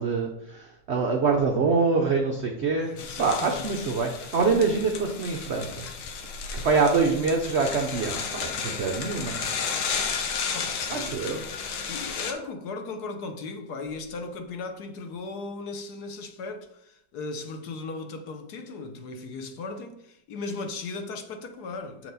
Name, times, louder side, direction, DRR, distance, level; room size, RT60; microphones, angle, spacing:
voice 1, 0.0-2.9 3.2-5.9 6.6-9.5 10.9-11.4, right 4 dB, 85° right, 0.5 m, -25 dB
voice 2, 2.7-3.9 10.5-11.2 11.9-22.1, left 3 dB, 65° left, 1.1 m, -37 dB
sound 1, 3.0-12.3, left 6 dB, 90° left, 1.6 m, -33 dB
6.8 x 4.5 x 4.0 m
omnidirectional pair, 2.0 m